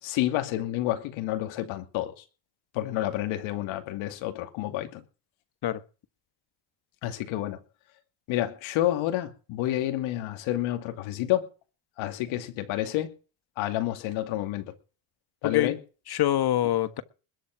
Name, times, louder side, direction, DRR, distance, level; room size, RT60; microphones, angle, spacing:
voice 1, 0.0-2.2 2.7-5.0 7.0-7.6 8.3-11.5 12.0-13.1 13.6-14.7 15.4-15.8, left 14 dB, 85° left, 2.6 m, -29 dB
voice 2, 16.1-17.0, left 12 dB, 55° left, 1.6 m, -25 dB
21.0 x 7.6 x 6.0 m
cardioid pair, 105°, 46 cm